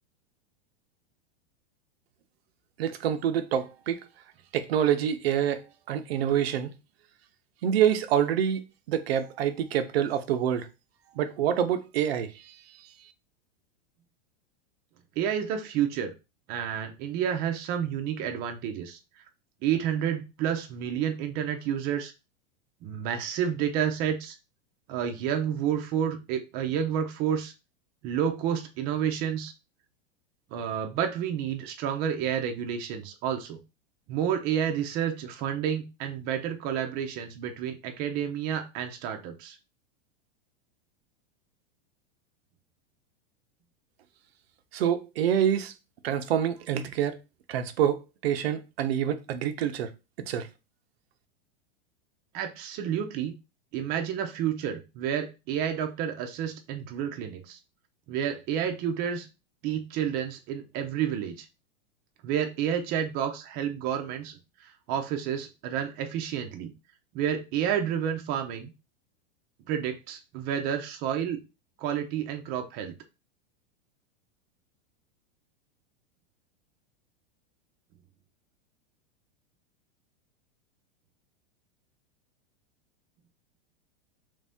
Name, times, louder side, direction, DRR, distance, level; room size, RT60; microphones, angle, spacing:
voice 1, 2.8-4.0 4.5-6.7 7.6-8.6 8.9-10.7 11.2-12.6 44.7-45.7 46.0-47.2 47.5-49.9 50.3-50.5, right 9 dB, 85° right, 0.7 m, -26 dB
voice 2, 15.2-16.1 16.5-19.0 19.6-22.1 22.8-24.4 24.9-27.5 28.0-29.5 30.5-33.6 34.1-39.6 52.3-53.3 53.7-57.6 58.1-59.3 59.6-61.5 62.2-66.7 67.1-68.7 69.7-71.4 71.8-73.0, right 9 dB, 30° right, 0.5 m, -30 dB
3.2 x 2.6 x 3.4 m
supercardioid pair, 150°, 30 cm